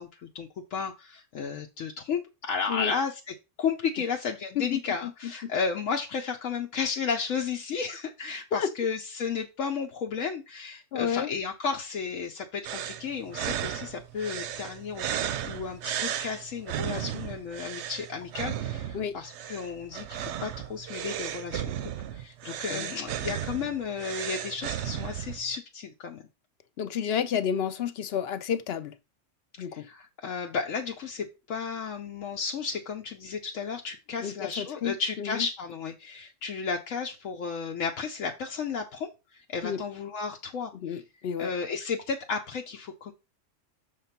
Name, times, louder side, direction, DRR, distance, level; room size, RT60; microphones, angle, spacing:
voice 1, 0.0-26.2 29.7-41.0 41.4-43.1, left 5 dB, 85° left, 1.1 m, -33 dB
voice 2, 4.6-5.5 8.5-8.7 10.9-11.3 18.9-19.2 22.7-23.0 26.8-28.9 29.6-29.9 34.2-35.5 39.6-39.8 40.7-41.5, left 8 dB, 60° left, 0.8 m, -31 dB
sound 1, 12.6-25.6, right 10 dB, 70° right, 0.8 m, -35 dB
6.4 x 3.4 x 5.7 m
omnidirectional pair, 1.3 m